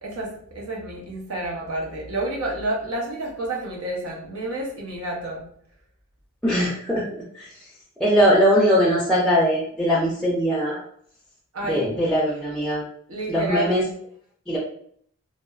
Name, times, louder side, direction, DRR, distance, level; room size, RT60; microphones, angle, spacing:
voice 1, 0.0-5.4 11.5-11.9 13.1-13.9, right 1 dB, 85° right, -2 dB, 0.7 m, -30 dB
voice 2, 6.4-7.5 8.0-10.8 11.7-12.8 13.3-13.8 14.5-14.6, equal, 5° left, -5 dB, 0.3 m, -21 dB
2.7 x 2.2 x 2.3 m, 0.63 s
head